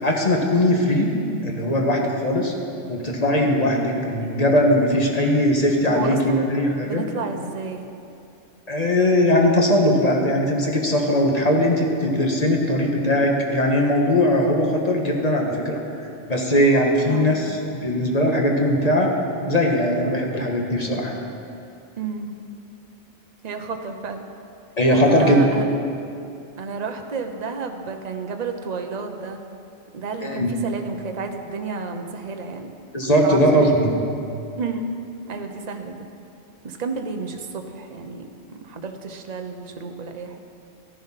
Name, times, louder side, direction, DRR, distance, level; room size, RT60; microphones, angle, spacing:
voice 1, 0.0-1.1 1.4-2.5 2.9-7.0 8.7-15.8 16.3-21.1 24.8-25.4 30.2-30.5 32.9-33.9, left 1 dB, 35° left, 0 dB, 1.5 m, -20 dB
voice 2, 5.9-6.5 6.8-7.9 17.1-17.4 22.0-22.4 23.4-24.2 24.9-25.7 26.6-29.4 29.9-32.7 33.2-33.9 34.6-34.9 35.3-36.1 36.6-40.4, right 4 dB, 40° right, 5 dB, 0.9 m, -31 dB
14.0 x 10.5 x 5.8 m, 2.6 s
omnidirectional pair, 1.2 m